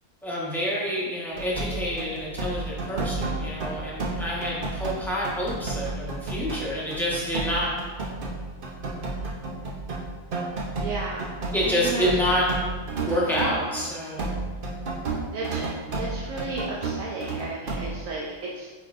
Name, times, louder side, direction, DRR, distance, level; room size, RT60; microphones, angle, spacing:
voice 1, 0.2-7.7 11.5-12.5 13.1-14.3, equal, ahead, -7 dB, 1.4 m, -28 dB
sound 1, 1.3-13.9 14.2-18.0, right 3 dB, 45° right, 0.9 m, -31 dB
voice 2, 10.8-11.3 11.6-12.1 15.3-15.6 15.9-18.7, right 3 dB, 80° right, -4 dB, 1.1 m, -33 dB
8.5 x 4.3 x 2.6 m, 1.4 s
omnidirectional pair, 1.4 m